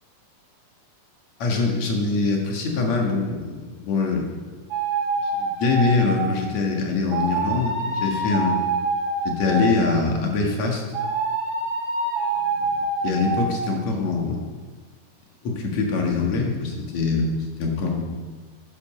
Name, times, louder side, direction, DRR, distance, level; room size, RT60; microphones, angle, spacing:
voice 1, 1.4-4.3 5.3-8.6 9.2-10.8 13.0-14.4 15.4-18.2, left 4 dB, 55° left, 0 dB, 2.4 m, -23 dB
sound 1, 4.7-6.5 7.1-10.0 10.9-13.6, right 3 dB, 45° right, 2.5 m, -26 dB
10.0 x 8.9 x 6.4 m, 1.4 s
omnidirectional pair, 4.5 m